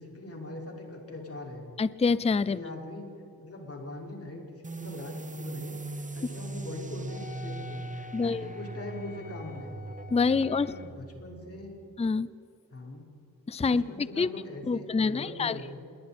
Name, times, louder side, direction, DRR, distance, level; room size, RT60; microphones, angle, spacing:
voice 1, 0.0-1.6 2.5-3.1 3.4-9.8 10.3-11.8 12.7-13.0 13.7-15.8, left 2 dB, 40° left, -1 dB, 5.2 m, -42 dB
voice 2, 1.8-2.6 8.1-8.5 10.1-10.7 12.0-12.3 13.5-14.3 14.6-15.6, left 4 dB, 15° left, 17 dB, 0.5 m, -26 dB
sound 1, 4.6-11.9, right 3 dB, 20° right, 1.2 m, -40 dB
Wind instrument woodwind instrument, 7.1-11.0, left 7 dB, 60° left, 0.7 m, -48 dB
27.0 x 22.0 x 4.4 m, 2.8 s
wide cardioid pair, 95°, 37 cm